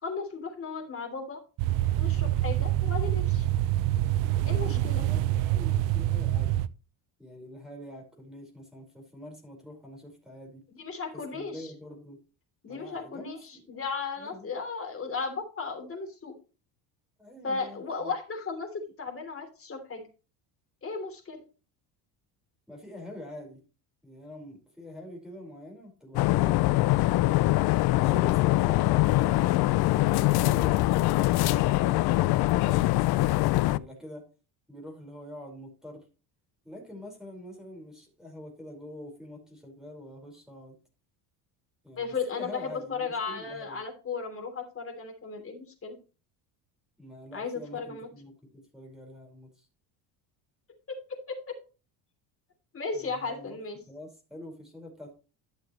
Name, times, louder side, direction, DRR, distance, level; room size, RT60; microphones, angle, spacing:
voice 1, 0.0-1.4 1.9-3.5 4.4-5.0 10.7-11.7 12.6-16.3 17.4-20.0 20.8-21.4 42.0-45.9 47.3-48.1 50.9-51.6 52.7-53.8, left 4 dB, 30° left, 4 dB, 3.3 m, -35 dB
sound 1, 1.6-6.7, right 14 dB, 80° right, 0.8 m, -26 dB
voice 2, 4.7-6.6 7.2-10.6 11.1-12.2 12.7-13.6 14.2-14.5 17.2-18.1 22.7-23.6 24.0-26.6 33.7-34.2 34.7-36.0 36.6-40.7 41.8-43.8 47.0-49.7 52.9-53.6 53.9-55.1, left 1 dB, ahead, -1 dB, 5.0 m, -45 dB
sound 2, 26.1-33.8, left 18 dB, 60° left, 0.5 m, -23 dB
12.0 x 7.0 x 3.2 m, 0.33 s
cardioid pair, 105°, 44 cm